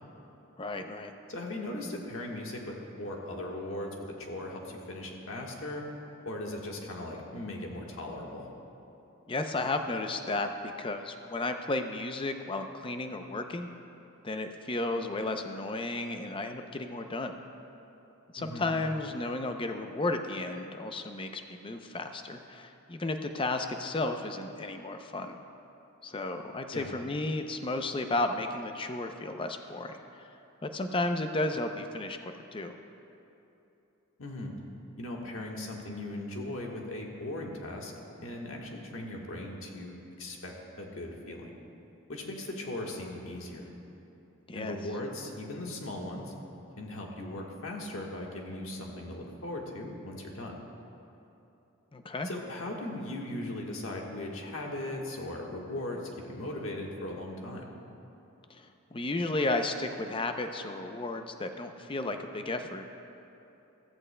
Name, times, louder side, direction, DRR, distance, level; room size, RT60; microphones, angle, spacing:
voice 1, 0.6-1.1 9.3-13.7 14.2-17.4 18.3-25.4 26.0-30.3 30.6-32.7 44.5-44.8 51.9-52.3 58.5-62.9, left 2 dB, 25° left, 6 dB, 0.5 m, -33 dB
voice 2, 1.3-5.8 6.2-8.5 18.4-18.7 26.7-26.9 34.2-34.5 35.0-37.9 38.2-41.6 42.1-43.7 44.5-46.3 46.8-50.6 52.2-57.7, left 1 dB, 70° left, 0 dB, 1.4 m, -38 dB
14.5 x 14.0 x 2.2 m, 2.9 s
head